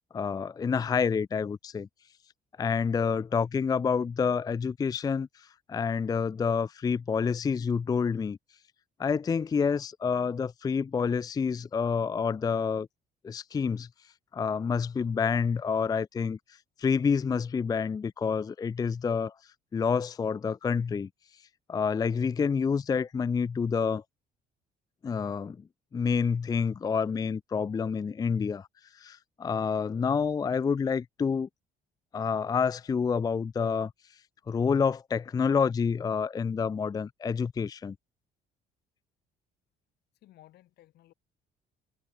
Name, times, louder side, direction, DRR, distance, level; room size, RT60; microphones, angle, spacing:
voice 1, 0.1-1.9 2.6-8.4 9.0-12.9 13.2-13.9 14.3-16.4 16.8-19.3 19.7-21.1 21.7-24.0 25.0-25.6 25.9-28.7 28.9-31.5 32.1-33.9 34.5-38.0, left 6 dB, 20° left, 0.4 m, -28 dB
voice 2, 40.1-41.1, left 15 dB, 75° left, 4.1 m, -57 dB
cardioid pair, 110°, 17 cm